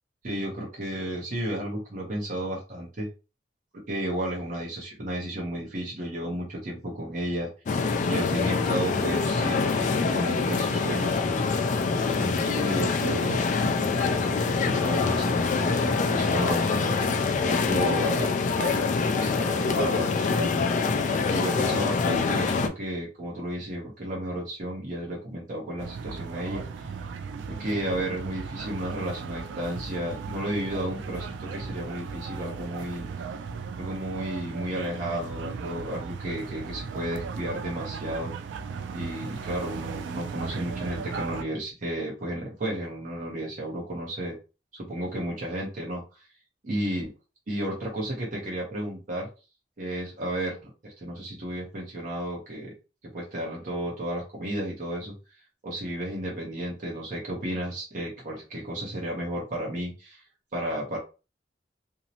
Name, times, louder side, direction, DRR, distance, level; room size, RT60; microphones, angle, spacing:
voice 1, 0.2-3.1 3.9-7.5 8.0-11.4 12.1-17.0 17.4-20.7 21.3-27.0 27.5-33.0 33.8-38.3 38.9-44.4 44.7-46.3 46.6-47.1 47.5-49.3 49.8-52.7 53.0-60.2 60.5-61.0, right 1 dB, 50° right, -3 dB, 0.7 m, -33 dB
sound 1, 7.7-22.7, left 4 dB, 45° left, 0.3 m, -25 dB
sound 2, 25.8-41.4, right 5 dB, 90° right, 0.3 m, -37 dB
2.7 x 2.0 x 2.7 m, 0.31 s
head